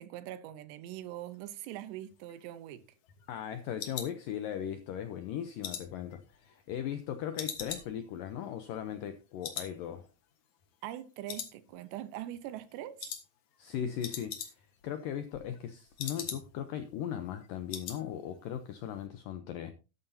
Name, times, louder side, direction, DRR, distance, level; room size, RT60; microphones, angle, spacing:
voice 1, 0.0-2.8 10.8-13.1, right 13 dB, 80° right, 3.0 m, -42 dB
sound 1, 2.1-4.8 5.2-7.0 7.4-9.2 9.4-9.8 10.0-10.1 10.6-11.0 11.3-12.1 12.3-12.6 13.0-13.3 13.6-13.7 13.9-14.8 15.1-16.7 17.0-17.1 17.4-18.0 18.3-18.6 18.9-19.0, left 8 dB, 60° left, 2.2 m, -42 dB
voice 2, 3.3-10.1 13.6-19.7, left 9 dB, 85° left, 1.9 m, -38 dB
13.0 x 10.5 x 2.8 m
omnidirectional pair, 5.0 m